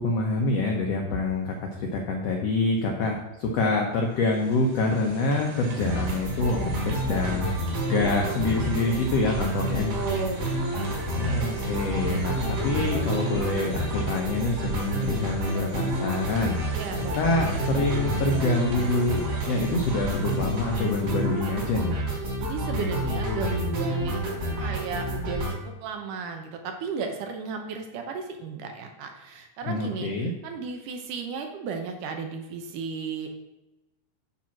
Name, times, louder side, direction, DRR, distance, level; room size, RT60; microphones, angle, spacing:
voice 1, 0.0-7.5 7.9-9.9 11.1-16.6 17.2-19.2 19.5-22.0 29.7-30.3, left 2 dB, 90° left, 1 dB, 1.4 m, -26 dB
sound 1, 4.0-22.0, right 3 dB, 90° right, 3.8 m, -40 dB
sound 2, 5.8-25.5, right 1 dB, 40° right, 4.2 m, -29 dB
voice 2, 9.9-11.0 16.7-17.2 22.4-24.3 24.6-33.3, right 5 dB, 70° right, 4 dB, 2.2 m, -34 dB
9.0 x 4.2 x 5.9 m, 1.0 s
omnidirectional pair, 4.2 m